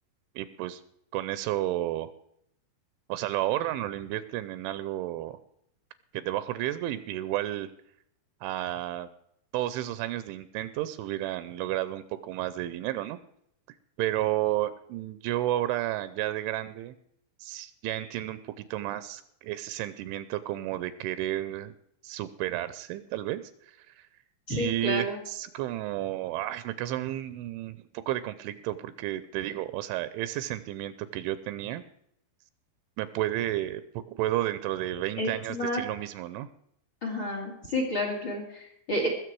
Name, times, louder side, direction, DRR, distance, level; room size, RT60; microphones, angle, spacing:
voice 1, 0.4-0.8 1.1-2.1 3.1-5.4 6.1-7.7 8.4-9.1 9.5-13.2 14.0-16.9 17.4-21.7 22.0-24.1 24.5-31.8 33.0-36.5, right 14 dB, 80° right, 14 dB, 3.0 m, -32 dB
voice 2, 24.5-25.2 35.2-35.8 37.0-39.1, left 1 dB, 40° left, 2 dB, 1.9 m, -30 dB
21.5 x 7.3 x 4.7 m, 0.72 s
omnidirectional pair, 5.5 m